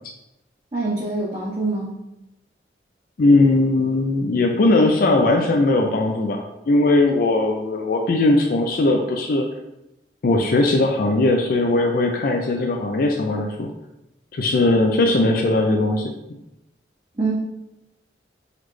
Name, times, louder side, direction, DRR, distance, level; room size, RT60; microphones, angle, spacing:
voice 1, 0.7-1.9 17.2-17.3, right 3 dB, 30° right, -6 dB, 0.7 m, -24 dB
voice 2, 3.2-9.4 10.2-13.7 14.3-16.1, left 2 dB, 55° left, 2 dB, 0.4 m, -19 dB
4.0 x 3.1 x 3.1 m, 0.90 s
head